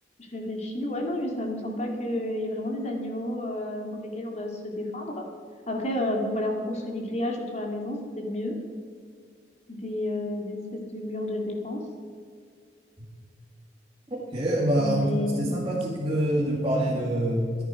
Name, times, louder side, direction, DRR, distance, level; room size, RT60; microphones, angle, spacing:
voice 1, 0.2-5.3 5.7-8.5 9.7-11.8 14.8-15.5, left 1 dB, 40° left, 2 dB, 2.2 m, -31 dB
voice 2, 14.1-15.1 15.4-17.6, right 1 dB, 30° right, -7 dB, 2.5 m, -25 dB
14.5 x 10.0 x 5.1 m, 2.2 s
head